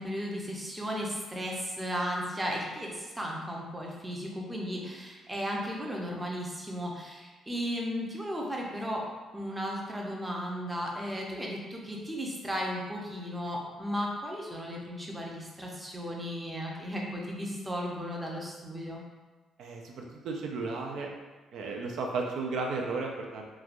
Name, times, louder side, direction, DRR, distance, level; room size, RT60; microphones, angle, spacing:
voice 1, 0.0-9.0 9.3-19.0, equal, 15° right, -2 dB, 0.6 m, -35 dB
voice 2, 19.6-21.1 21.5-23.5, right 3 dB, 75° right, 1 dB, 0.4 m, -34 dB
3.1 x 2.3 x 2.5 m, 1.3 s
cardioid pair, 90°, 0 cm